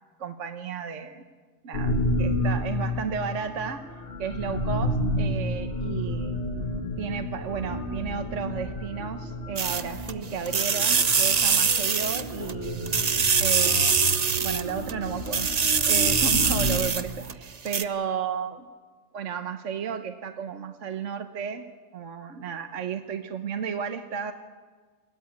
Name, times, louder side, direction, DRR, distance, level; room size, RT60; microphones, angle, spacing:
voice 1, 0.2-1.3 1.6-3.9 4.2-6.4 7.0-13.1 13.4-14.0 14.4-15.5 15.9-18.7 19.1-21.7 21.9-24.3, right 7 dB, 60° right, 7 dB, 1.3 m, -33 dB
sound 1, 1.7-16.8, left 1 dB, 45° left, 2.6 m, -31 dB
sound 2, 9.6-10.1 10.5-12.5 12.9-14.9 15.3-17.3 17.7-17.8, right 6 dB, 35° right, 0.7 m, -23 dB
22.0 x 16.5 x 9.5 m, 1.4 s
omnidirectional pair, 1.5 m